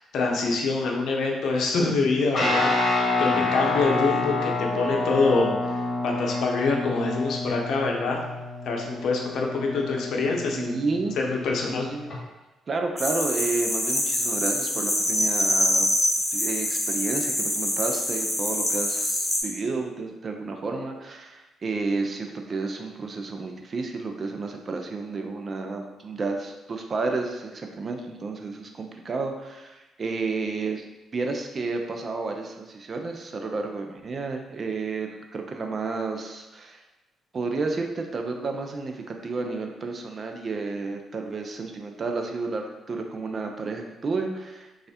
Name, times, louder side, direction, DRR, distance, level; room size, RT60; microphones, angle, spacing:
voice 1, 0.0-5.5 6.0-8.2 8.7-10.7 11.2-11.9, left 3 dB, 70° left, 0 dB, 0.6 m, -25 dB
Guitar, 2.3-12.2, left 2 dB, 45° left, 1.0 m, -28 dB
voice 2, 10.5-11.2 11.7-12.2 12.7-15.9 16.3-30.8 31.1-36.8 37.3-44.9, right 3 dB, 40° right, 3 dB, 0.5 m, -31 dB
sound 1, 13.0-19.4, left 1 dB, 10° left, 1.1 m, -25 dB
3.2 x 2.4 x 4.2 m, 1.1 s
cardioid pair, 90°, 0 cm